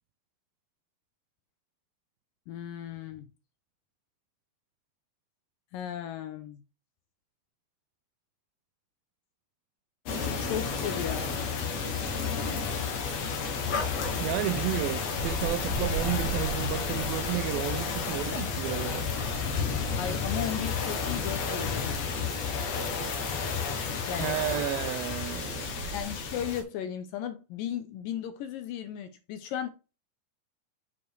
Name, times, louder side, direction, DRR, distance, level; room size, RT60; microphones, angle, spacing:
voice 1, 2.5-3.3 5.7-6.6 10.4-11.3 18.3-18.5 20.0-22.0 24.1-24.4 25.9-29.7, left 9 dB, 75° left, 2.2 m, -36 dB
sound 1, 10.1-26.6, left 5 dB, 60° left, 1.9 m, -31 dB
voice 2, 14.2-19.1 24.2-25.9, right 14 dB, 80° right, 2.2 m, -32 dB
7.2 x 5.2 x 4.6 m
omnidirectional pair, 4.5 m